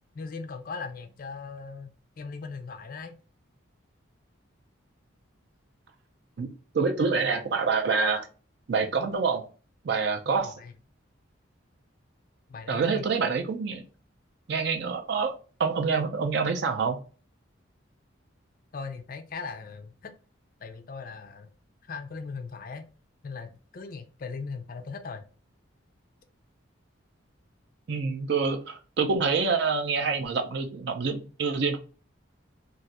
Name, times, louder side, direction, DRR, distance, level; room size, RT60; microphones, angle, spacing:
voice 1, 0.1-3.1 10.4-10.7 12.5-13.1 18.7-20.1 20.6-21.5 21.8-22.8 23.2-25.2, left 4 dB, 45° left, 6 dB, 0.4 m, -39 dB
voice 2, 6.7-8.3 8.7-9.5 9.8-10.5 12.7-13.8 14.5-15.3 15.6-17.0 27.9-31.8, right 5 dB, 55° right, 5 dB, 0.4 m, -26 dB
2.5 x 2.3 x 3.9 m, 0.36 s
head